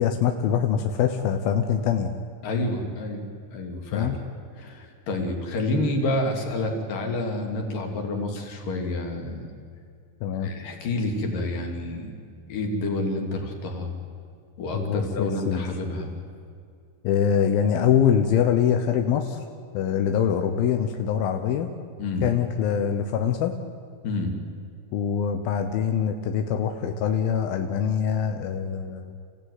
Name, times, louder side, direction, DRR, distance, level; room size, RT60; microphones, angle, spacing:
voice 1, 0.0-2.1 3.9-4.2 10.2-10.5 14.7-15.6 17.0-19.4 19.7-21.7 22.2-23.5 24.9-29.1, left 8 dB, 70° left, 5 dB, 2.3 m, -24 dB
voice 2, 2.4-3.2 3.5-4.2 4.6-9.5 10.4-12.1 12.5-13.9 14.6-16.1 22.0-22.3 24.0-24.4, left 2 dB, 50° left, 2 dB, 4.1 m, -28 dB
28.5 x 16.0 x 9.6 m, 2.4 s
omnidirectional pair, 5.5 m